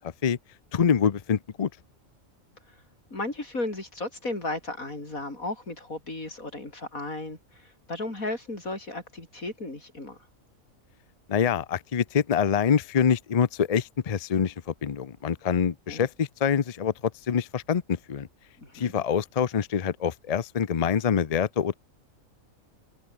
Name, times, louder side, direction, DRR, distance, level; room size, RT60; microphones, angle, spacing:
voice 1, 0.7-1.7 11.3-16.9 17.3-18.3 18.7-21.7, left 7 dB, 40° left, 0.6 m, -25 dB
voice 2, 3.1-10.2 15.9-16.0 18.6-18.9, left 2 dB, 90° left, 6.5 m, -35 dB
open air
omnidirectional pair, 1.4 m